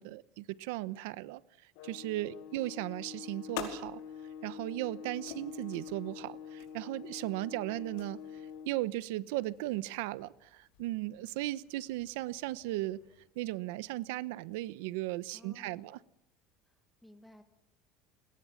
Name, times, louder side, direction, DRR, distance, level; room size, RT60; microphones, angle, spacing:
voice 1, 0.0-4.0 4.4-8.2 8.6-13.0 13.3-16.0, right 17 dB, 85° right, 17 dB, 1.0 m, -36 dB
sound 1, 1.8-8.8, left 7 dB, 60° left, 1.7 m, -46 dB
voice 2, 2.3-2.7 15.3-15.9 16.6-17.4, left 1 dB, ahead, 7 dB, 2.0 m, -58 dB
sound 2, 2.9-13.2, left 10 dB, 80° left, 5.0 m, -50 dB
28.0 x 21.5 x 7.3 m, 0.80 s
cardioid pair, 175°, 0 cm